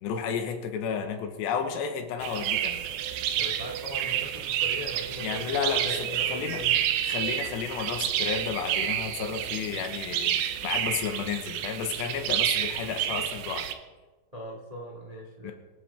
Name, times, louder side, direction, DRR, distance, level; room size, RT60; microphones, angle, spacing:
voice 1, 0.0-2.8 5.2-6.6 7.0-13.7 15.4-15.5, left 7 dB, 80° left, 6 dB, 3.4 m, -32 dB
sound 1, 2.2-13.7, right 11 dB, 75° right, 2.8 m, -29 dB
voice 2, 3.4-6.9 14.3-15.5, equal, 50° right, -1 dB, 0.4 m, -40 dB
25.0 x 10.5 x 3.6 m, 1.2 s
omnidirectional pair, 5.0 m